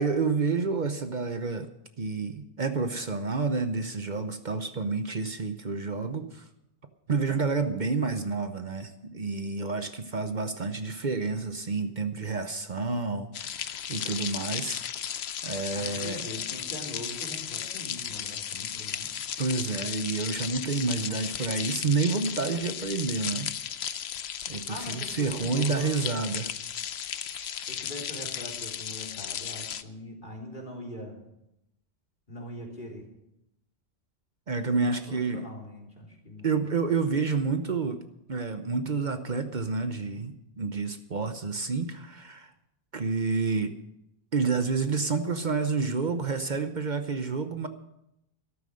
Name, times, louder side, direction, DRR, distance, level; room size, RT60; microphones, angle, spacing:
voice 1, 0.0-1.7 2.0-6.5 7.1-14.8 15.4-16.2 19.4-23.6 24.5-26.5 27.2-27.8 34.5-35.5 36.4-38.0 38.3-42.5 42.9-43.7 44.3-47.7, right 4 dB, 50° right, 8 dB, 1.0 m, -29 dB
sound 1, 13.3-29.8, left 9 dB, 85° left, 1.0 m, -35 dB
voice 2, 15.7-19.1 24.7-26.2 27.7-31.2 32.3-33.1 34.7-36.5, equal, 50° left, 1 dB, 3.8 m, -42 dB
13.0 x 13.0 x 6.4 m, 0.83 s
omnidirectional pair, 1.1 m